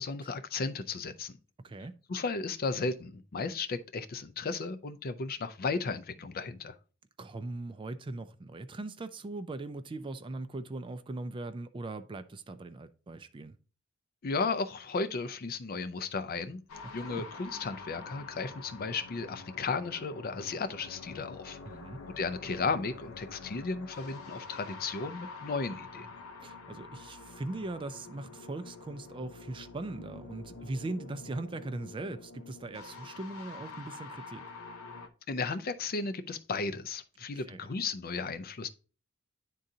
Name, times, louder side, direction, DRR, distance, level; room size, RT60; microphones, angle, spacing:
voice 1, 0.0-1.4 2.1-6.8 14.2-16.6 16.9-21.8 22.1-26.1 35.3-38.7, left 4 dB, 45° left, 0.5 m, -34 dB
voice 2, 1.6-2.0 7.2-13.6 17.1-17.3 21.6-22.0 26.4-34.4 37.3-37.6, right 2 dB, 25° right, 0.3 m, -40 dB
sound 1, 16.7-35.1, left 4 dB, 85° left, 0.7 m, -47 dB
10.0 x 3.8 x 2.7 m
head